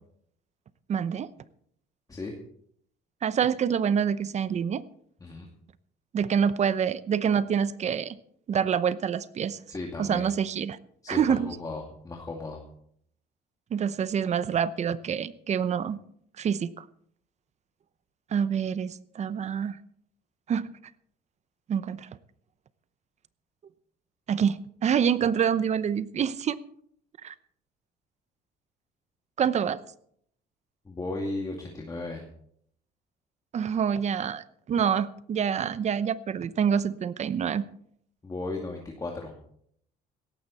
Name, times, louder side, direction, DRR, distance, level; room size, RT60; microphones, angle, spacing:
voice 1, 0.9-1.3 3.2-4.8 6.1-8.2 8.5-9.6 10.0-10.8 11.1-11.5 13.7-16.0 16.4-16.8 18.3-19.8 20.5-20.7 21.7-22.1 24.3-26.6 27.2-27.3 29.4-29.8 33.5-37.6, right 7 dB, 40° right, 16 dB, 0.8 m, -26 dB
voice 2, 9.7-10.3 11.0-12.6 30.8-32.2 38.2-39.3, left 2 dB, 20° left, 0 dB, 2.4 m, -35 dB
17.0 x 13.5 x 4.2 m, 0.68 s
cardioid pair, 110°, 17 cm